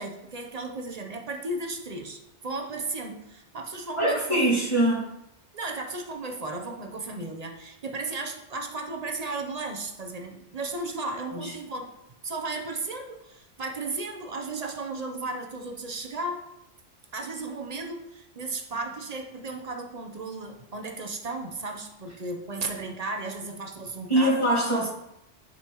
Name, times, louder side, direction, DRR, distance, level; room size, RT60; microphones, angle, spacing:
voice 1, 0.0-4.6 5.5-11.9 12.2-16.5 17.1-24.4, right 3 dB, 40° right, 3 dB, 0.8 m, -35 dB
voice 2, 4.0-5.1 11.3-11.5 24.1-24.9, right 1 dB, 25° left, -8 dB, 2.0 m, -23 dB
10.0 x 5.4 x 3.0 m, 0.87 s
omnidirectional pair, 1.2 m